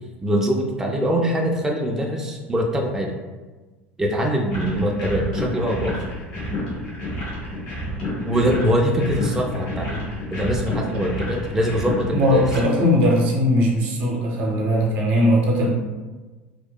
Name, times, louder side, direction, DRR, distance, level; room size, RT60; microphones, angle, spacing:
voice 1, 0.2-3.1 4.0-6.0 8.3-12.4, equal, 10° right, 0 dB, 0.3 m, -23 dB
sound 1, 4.5-12.6, left 1 dB, 75° left, 1.0 m, -30 dB
voice 2, 12.1-15.7, equal, 65° right, -2 dB, 0.7 m, -19 dB
2.8 x 2.1 x 2.2 m, 1.3 s
hypercardioid pair, 75°, 7 cm